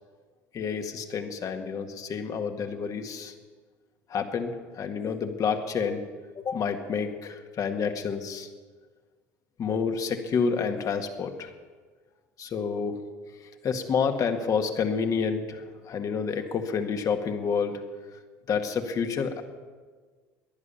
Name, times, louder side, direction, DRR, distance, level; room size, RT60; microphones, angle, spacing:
voice 1, 0.5-3.3 4.1-6.1 6.4-8.5 9.6-11.5 12.4-13.0 13.6-17.8 18.5-19.4, left 6 dB, 45° left, 5 dB, 1.9 m, -29 dB
16.0 x 11.0 x 7.0 m, 1.5 s
hypercardioid pair, 80°, 8 cm